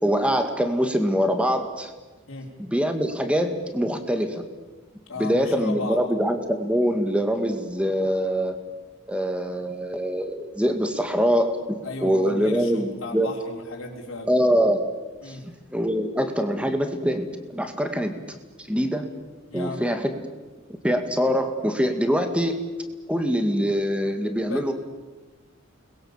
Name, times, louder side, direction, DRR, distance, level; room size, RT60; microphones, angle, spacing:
voice 1, 0.0-1.9 2.6-4.4 5.2-8.6 9.1-13.3 14.3-14.8 15.3-19.1 19.5-20.1 20.8-22.6 23.1-24.7, equal, 5° right, 6 dB, 2.1 m, -24 dB
voice 2, 5.1-6.0 11.8-14.3 15.2-15.5 19.5-19.8 24.5-24.7, left 2 dB, 85° left, -6 dB, 4.3 m, -34 dB
29.5 x 21.5 x 7.4 m, 1.2 s
head